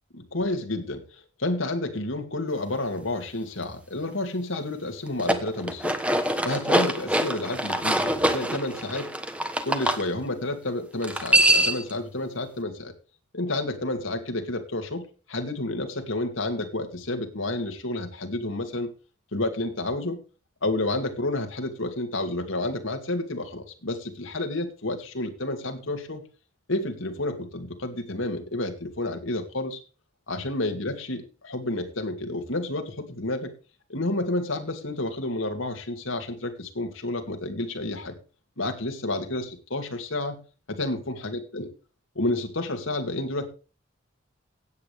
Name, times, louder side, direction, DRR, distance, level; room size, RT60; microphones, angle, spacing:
voice 1, 0.1-6.0 6.4-9.1 9.6-12.9 13.3-18.9 19.3-20.2 20.6-26.2 26.7-29.8 30.3-33.5 33.9-38.2 38.6-40.4 40.7-41.7 42.1-43.5, left 2 dB, 85° left, 5 dB, 2.5 m, -30 dB
sound 1, 5.1-10.0 11.0-11.9, right 1 dB, 5° right, 1.2 m, -24 dB
16.5 x 9.0 x 3.4 m, 0.35 s
head